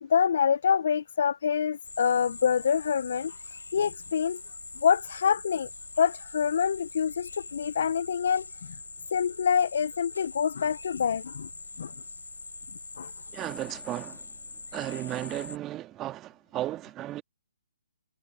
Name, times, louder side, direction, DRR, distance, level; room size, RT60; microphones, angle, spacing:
voice 1, 0.0-3.3 3.7-4.4 4.8-5.7 6.0-8.4 9.1-11.5 11.8-11.9 13.0-13.1, left 7 dB, 55° left, 0.9 m, -26 dB
sound 1, 1.8-15.6, left 3 dB, 80° left, 3.9 m, -43 dB
voice 2, 13.3-14.3 14.7-17.2, right 14 dB, 20° right, 1.9 m, -35 dB
figure-of-eight pair, 135°, 0 cm